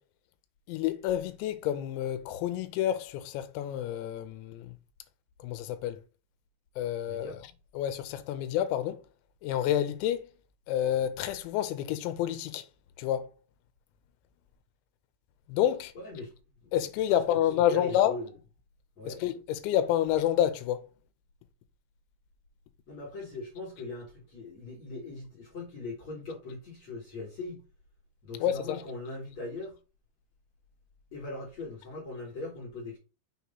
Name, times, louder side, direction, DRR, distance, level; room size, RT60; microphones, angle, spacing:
voice 1, 0.7-4.7 5.4-6.0 6.8-7.3 7.8-9.0 9.4-10.3 10.7-12.6 13.0-13.3 15.5-15.9 16.7-18.1 19.1-20.8 28.4-28.8, left 11 dB, 85° left, 2.9 m, -29 dB
voice 2, 7.1-7.4 15.9-16.3 16.6-16.7 17.1-17.2 17.7-18.3 19.0-19.2 22.9-27.6 28.2-29.8 31.1-33.0, left 2 dB, 55° left, 2.1 m, -40 dB
6.6 x 3.0 x 5.4 m
omnidirectional pair, 5.3 m